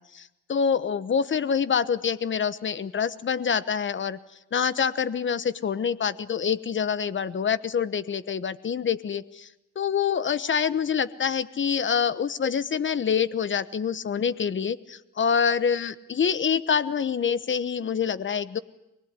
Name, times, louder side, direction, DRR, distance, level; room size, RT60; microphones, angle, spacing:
voice 1, 0.0-4.2 4.5-9.5 9.7-18.6, left 7 dB, 40° left, 16 dB, 1.1 m, -26 dB
24.5 x 19.5 x 9.8 m, 0.91 s
cardioid pair, 90°, 30 cm